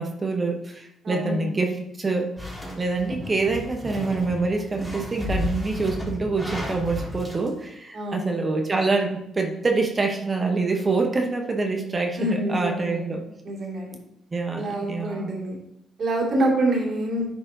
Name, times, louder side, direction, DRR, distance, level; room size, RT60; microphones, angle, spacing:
voice 1, 0.0-2.3 2.8-13.2 14.3-15.3, right 3 dB, 30° right, 3 dB, 0.9 m, -26 dB
voice 2, 1.0-1.5 7.9-8.3 12.2-13.2 13.4-14.0 14.5-15.6 16.0-17.3, right 1 dB, 55° right, -2 dB, 2.3 m, -26 dB
sound 1, 2.4-7.5, left 2 dB, ahead, 1.9 m, -33 dB
9.7 x 4.7 x 2.7 m, 0.79 s
cardioid pair, 90°, 0 cm